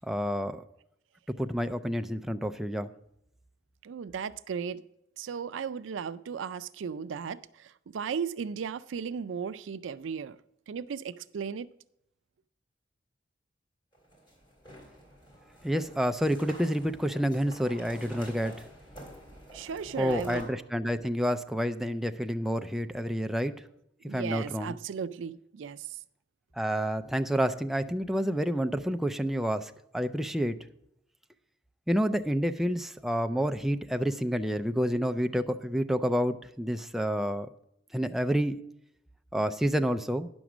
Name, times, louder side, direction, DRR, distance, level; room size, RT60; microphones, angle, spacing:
voice 1, 0.1-0.6 1.4-2.9 15.6-18.5 20.0-23.5 24.0-24.8 26.6-30.5 31.9-37.5 37.9-38.6 39.3-40.3, equal, ahead, 0.3 m, -29 dB
voice 2, 3.8-4.8 5.2-10.4 10.7-11.7 19.5-20.5 24.1-26.0, right 6 dB, 85° right, 0.4 m, -36 dB
sound 1, 13.9-20.4, equal, 25° left, 3.1 m, -48 dB
10.0 x 6.2 x 6.0 m
head